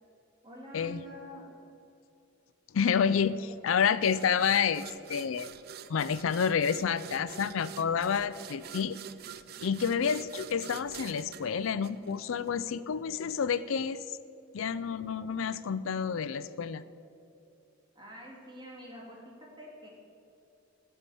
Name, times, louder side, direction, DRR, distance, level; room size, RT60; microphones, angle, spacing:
voice 1, 0.4-1.5 3.4-3.5 17.9-19.9, equal, 20° right, -2 dB, 2.3 m, -47 dB
voice 2, 2.7-5.5 5.9-9.0 9.6-14.2 14.5-16.8, left 7 dB, 70° left, 15 dB, 0.4 m, -29 dB
sound 1, 4.0-12.5, right 8 dB, 50° right, 0.4 m, -47 dB
13.0 x 5.6 x 8.4 m, 2.6 s
head